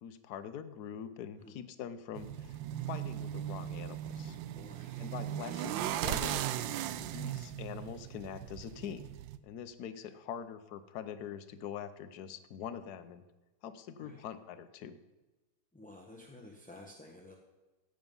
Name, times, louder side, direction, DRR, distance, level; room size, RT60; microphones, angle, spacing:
voice 1, 0.0-2.6 2.9-4.4 5.0-6.5 7.1-9.0 9.4-13.2 13.6-15.0, left 8 dB, 60° left, 11 dB, 1.2 m, -44 dB
sound 1, 2.2-9.4, right 12 dB, 80° right, 1.3 m, -38 dB
voice 2, 4.5-5.1 6.8-7.2 10.0-10.1 14.0-14.3 15.7-17.4, left 2 dB, 5° left, 0 dB, 0.8 m, -53 dB
15.0 x 9.2 x 5.4 m, 1.2 s
omnidirectional pair, 2.1 m